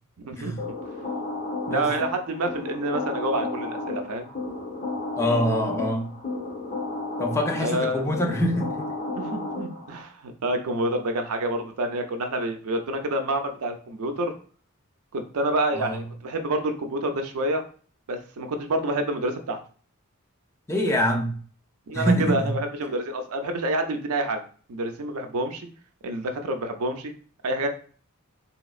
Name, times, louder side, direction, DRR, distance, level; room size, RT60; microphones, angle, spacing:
voice 1, 0.2-0.5 1.7-4.3 7.6-8.1 9.1-14.3 15.1-17.6 18.1-19.6 21.9-24.4 24.7-25.7 26.0-27.1 27.4-27.7, right 1 dB, 85° right, 6 dB, 0.5 m, -28 dB
sound 1, 0.6-10.0, left 2 dB, 40° left, 1.0 m, -33 dB
voice 2, 5.2-6.1 7.2-8.9 15.7-16.1 20.7-21.4 21.9-22.5, equal, 15° left, 2 dB, 0.4 m, -25 dB
3.4 x 2.9 x 2.4 m, 0.43 s
head